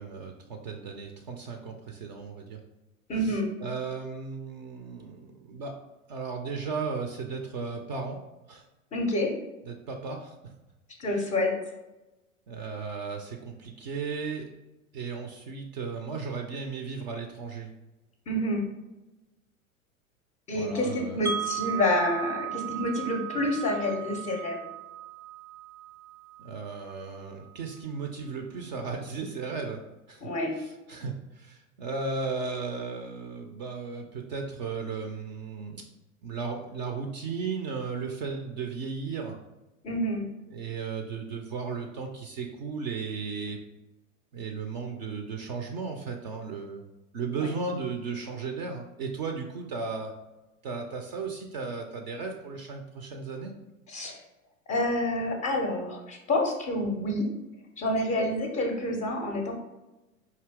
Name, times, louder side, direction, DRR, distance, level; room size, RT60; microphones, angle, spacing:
voice 1, 0.0-2.6 3.2-5.7 6.1-8.2 8.5-8.6 9.7-10.5 12.5-14.5 14.9-17.7 20.5-21.2 26.4-29.8 30.1-30.3 30.5-35.8 36.2-39.3 40.5-43.6 44.3-46.8 47.1-50.1 50.6-53.5, right 4 dB, 35° right, 3 dB, 0.4 m, -35 dB
voice 2, 3.1-3.5 8.9-9.4 11.0-11.5 18.3-18.7 20.5-24.6 30.2-30.5 39.8-40.3 47.4-47.5 53.9-54.2 54.7-57.3 57.8-59.5, left 1 dB, 20° left, 3 dB, 0.5 m, -28 dB
Wind chime, 21.3-27.2, right 10 dB, 85° right, 0.6 m, -36 dB
4.8 x 2.7 x 3.4 m, 1.0 s
figure-of-eight pair, 90°, 41 cm